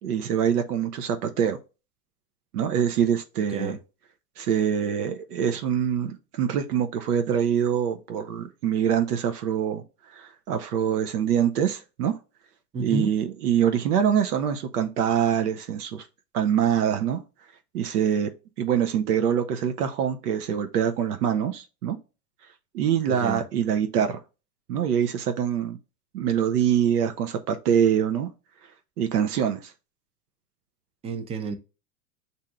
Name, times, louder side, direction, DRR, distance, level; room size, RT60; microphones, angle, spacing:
voice 1, 0.0-1.6 2.5-3.8 4.4-9.8 10.1-12.1 12.8-16.1 16.3-17.2 17.7-18.3 18.6-22.0 22.7-24.2 24.7-25.8 26.1-28.3 29.0-29.7, right 8 dB, 80° right, 0.7 m, -24 dB
voice 2, 12.7-13.1 23.1-23.4 31.0-31.6, right 3 dB, 15° right, 0.4 m, -30 dB
7.3 x 2.7 x 2.3 m
hypercardioid pair, 110°, 45 cm